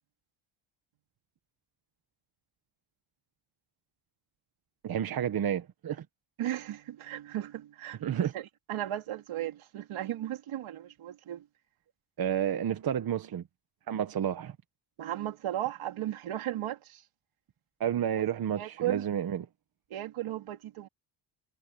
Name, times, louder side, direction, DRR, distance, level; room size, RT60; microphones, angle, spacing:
voice 1, 4.8-6.0 8.0-8.3 12.2-13.4 13.9-14.5 17.8-19.5, right 9 dB, 45° right, 1.2 m, -30 dB
voice 2, 6.4-8.0 8.3-11.4 15.0-17.0 18.2-18.3 18.6-19.0 19.9-20.9, right 13 dB, 80° right, 3.7 m, -35 dB
cardioid pair, 155°, 48 cm